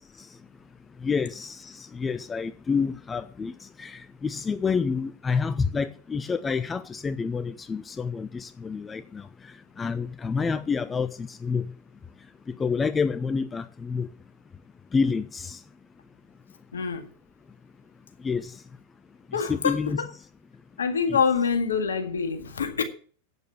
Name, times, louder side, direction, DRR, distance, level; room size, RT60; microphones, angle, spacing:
voice 1, 1.0-3.5 3.8-9.2 9.8-11.7 12.6-14.1 14.9-15.6 18.2-18.5 19.5-20.0, left 5 dB, 15° left, 0.6 m, -28 dB
voice 2, 16.7-17.1 19.3-20.1 20.8-22.8, left 5 dB, 70° left, 1.9 m, -26 dB
8.9 x 8.0 x 8.1 m
figure-of-eight pair, 90°, 0 cm